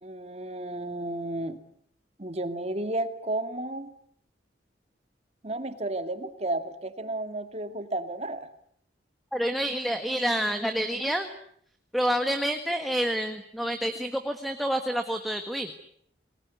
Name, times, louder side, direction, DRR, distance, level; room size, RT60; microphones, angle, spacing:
voice 1, 0.0-1.6 2.2-3.9 5.4-8.5, right 2 dB, 35° right, 8 dB, 2.3 m, -32 dB
voice 2, 9.3-11.3 11.9-15.7, equal, ahead, 5 dB, 1.5 m, -28 dB
29.0 x 20.0 x 9.5 m, 0.68 s
head